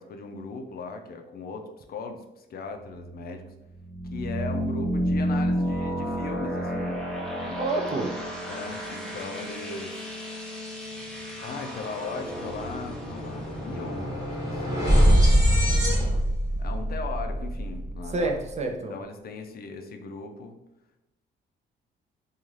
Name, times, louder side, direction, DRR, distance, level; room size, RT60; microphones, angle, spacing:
voice 1, 0.0-3.5 4.1-7.0 7.4-7.6 8.4-10.0 11.4-15.4 16.6-18.4 18.7-20.6, left 4 dB, 50° left, 5 dB, 0.4 m, -38 dB
sound 1, 2.8-15.5, equal, 5° left, 0.7 m, -32 dB
voice 2, 7.6-8.1 18.1-18.9, right 2 dB, 35° right, 3 dB, 0.4 m, -28 dB
sound 2, 11.7-11.8 12.1-18.4, equal, 15° right, 1.0 m, -24 dB
2.5 x 2.3 x 3.1 m, 0.92 s
cardioid pair, 90°, 20 cm